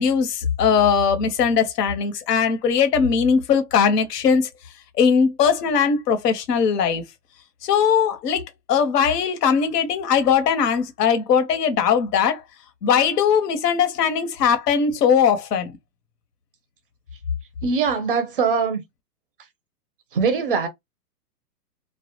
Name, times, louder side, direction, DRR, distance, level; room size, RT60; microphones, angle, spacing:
voice 1, 0.0-4.5 5.0-7.0 7.6-8.4 8.7-12.4 12.8-15.7, left 6 dB, 75° left, 0.8 m, -20 dB
voice 2, 17.6-18.8 20.1-20.7, right 5 dB, 40° right, 0.4 m, -22 dB
2.2 x 2.0 x 2.8 m
hypercardioid pair, 165°, 48 cm